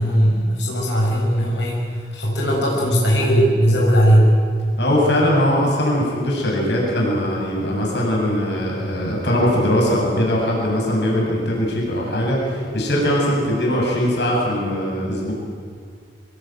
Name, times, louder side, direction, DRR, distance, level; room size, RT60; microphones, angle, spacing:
voice 1, 0.0-4.3, equal, 90° left, -3 dB, 7.4 m, -18 dB
voice 2, 4.8-15.3, equal, 70° left, -2 dB, 7.7 m, -20 dB
25.0 x 21.0 x 9.4 m, 2.1 s
head